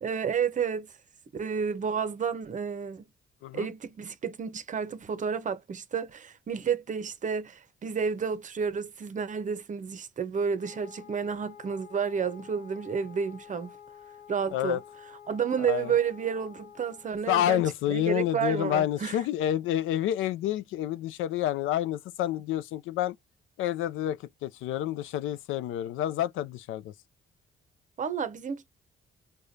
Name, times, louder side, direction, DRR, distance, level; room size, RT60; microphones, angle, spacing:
voice 1, 0.0-0.9 1.3-3.0 3.5-13.7 14.3-14.8 15.3-17.6 17.9-19.2 28.0-28.7, right 6 dB, 40° right, 0.7 m, -31 dB
Wind instrument woodwind instrument, 10.6-17.2, left 9 dB, 45° left, 0.8 m, -50 dB
voice 2, 17.3-23.1 23.6-26.9, left 12 dB, 85° left, 0.4 m, -29 dB
4.8 x 2.2 x 2.6 m
cardioid pair, 90°, 20 cm